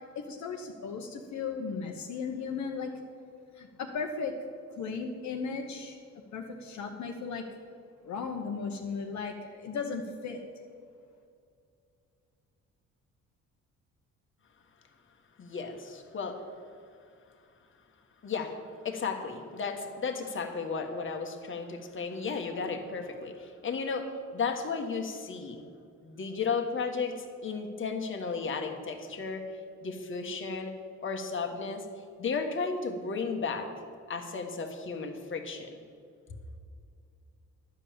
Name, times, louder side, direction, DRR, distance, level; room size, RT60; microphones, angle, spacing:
voice 1, 0.0-2.9 3.5-4.4 4.7-6.0 6.3-7.4 8.0-10.4, left 5 dB, 70° left, 2 dB, 1.0 m, -36 dB
voice 2, 15.4-16.4 18.2-18.6 18.8-25.6 26.0-29.4 29.8-30.7 31.0-31.9 32.2-33.7 34.1-35.8, left 5 dB, 40° left, 4 dB, 1.4 m, -34 dB
11.5 x 5.5 x 8.7 m, 2.3 s
cardioid pair, 90°, 30 cm